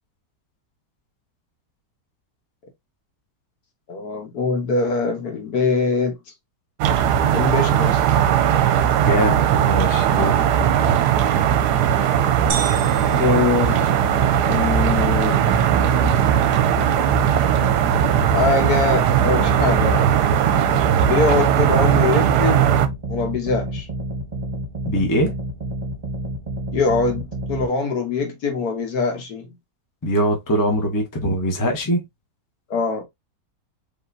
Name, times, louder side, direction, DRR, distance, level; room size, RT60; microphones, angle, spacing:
voice 1, 3.9-6.1 7.3-8.0 13.1-13.9 14.5-15.4 18.0-20.0 21.1-22.7 23.1-23.9 26.7-29.5 32.7-33.0, left 4 dB, 60° left, 1.5 m, -23 dB
sound 1, 6.8-22.9, right 9 dB, 75° right, 1.1 m, -18 dB
voice 2, 9.0-10.7 24.9-25.3 30.0-32.0, equal, 15° left, 0.7 m, -22 dB
sound 2, 12.5-14.4, right 6 dB, 55° right, 1.1 m, -32 dB
sound 3, 14.0-27.7, right 1 dB, 25° right, 1.2 m, -30 dB
4.8 x 3.2 x 2.6 m
omnidirectional pair, 1.9 m